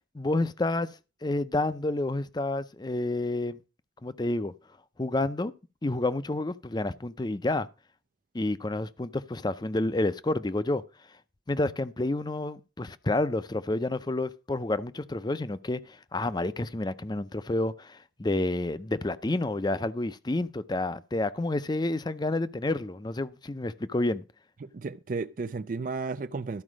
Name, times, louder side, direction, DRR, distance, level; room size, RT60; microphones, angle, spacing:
voice 1, 0.1-0.9 1.2-3.6 4.0-4.5 5.0-5.5 5.8-7.7 8.3-10.8 11.5-15.8 16.1-24.2, left 2 dB, 25° left, 0.5 m, -29 dB
voice 2, 24.6-26.6, right 4 dB, 50° right, 0.4 m, -33 dB
13.0 x 4.9 x 6.2 m
head